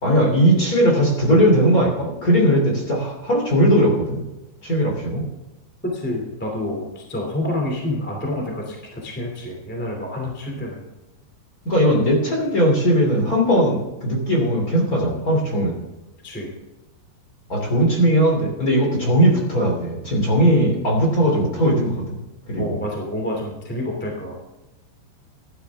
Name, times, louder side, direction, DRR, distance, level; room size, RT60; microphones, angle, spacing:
voice 1, 0.0-4.2 4.6-5.2 11.6-15.8 17.5-22.2 22.5-22.8, equal, 25° left, 0 dB, 2.7 m, -18 dB
voice 2, 5.9-10.8 16.2-16.5 22.6-24.4, left 1 dB, 5° left, 0 dB, 1.4 m, -28 dB
17.0 x 11.5 x 3.6 m, 1.1 s
omnidirectional pair, 5.2 m